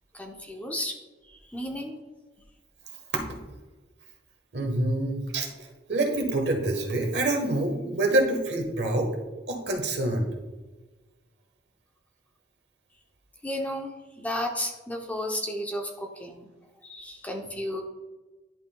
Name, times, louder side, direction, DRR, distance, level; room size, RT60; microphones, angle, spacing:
voice 1, 0.1-1.0 1.5-2.0 13.4-13.9 14.2-16.5 16.8-17.8, left 1 dB, 10° left, 1 dB, 0.6 m, -33 dB
voice 2, 4.5-9.1 9.5-10.3, right 2 dB, 65° right, 3 dB, 1.2 m, -26 dB
10.5 x 5.7 x 2.2 m, 1.2 s
head